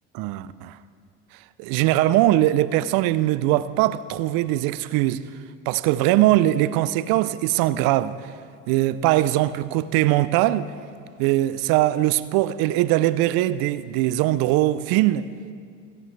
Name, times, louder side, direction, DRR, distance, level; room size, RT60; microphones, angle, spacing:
voice 1, 0.1-0.8 1.6-5.2 5.7-8.2 8.7-10.7 11.2-15.3, right 15 dB, 70° right, 0.6 m, -21 dB
17.0 x 15.5 x 3.3 m
hypercardioid pair, 75°, 38 cm